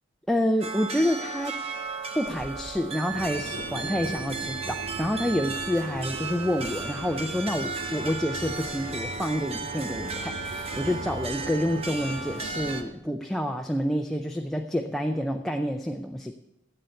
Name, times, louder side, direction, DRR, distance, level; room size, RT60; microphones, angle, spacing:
voice 1, 0.3-1.6 2.1-16.3, equal, ahead, 3 dB, 0.5 m, -28 dB
sound 1, 0.6-12.8, right 4 dB, 30° right, 0.9 m, -35 dB
sound 2, 3.1-12.8, right 1 dB, 85° right, 2.5 m, -39 dB
10.5 x 7.8 x 6.9 m, 0.86 s
head